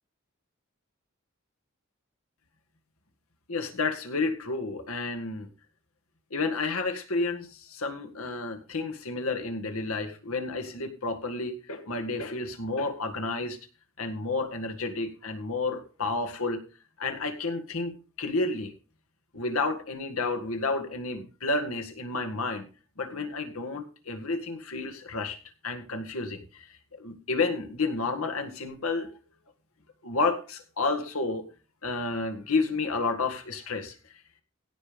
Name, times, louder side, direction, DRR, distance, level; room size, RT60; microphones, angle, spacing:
voice 1, 3.5-5.5 6.3-13.6 14.0-16.6 17.0-18.7 19.3-22.7 23.0-25.4 25.6-29.1 30.0-31.5 31.8-34.2, left 3 dB, 90° left, 5 dB, 1.9 m, -31 dB
16.5 x 5.5 x 5.1 m, 0.34 s
head